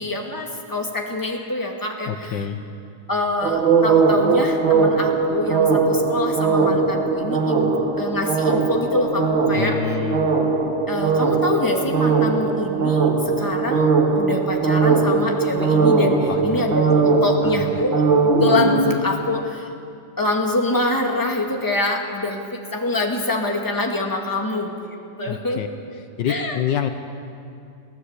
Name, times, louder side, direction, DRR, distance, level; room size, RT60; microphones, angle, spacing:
voice 1, 0.0-2.5 3.1-7.7 8.0-9.8 10.9-13.9 14.2-19.7 20.2-25.6 26.3-26.6, left 2 dB, 10° left, 1 dB, 2.0 m, -25 dB
voice 2, 2.1-2.6 9.5-10.3 16.3-16.7 17.4-17.8 25.3-25.7 25.9-26.9, left 9 dB, 70° left, 8 dB, 1.6 m, -27 dB
sound 1, 3.4-18.9, right 4 dB, 85° right, 2.2 m, -19 dB
23.0 x 16.0 x 8.2 m, 2.5 s
omnidirectional pair, 2.1 m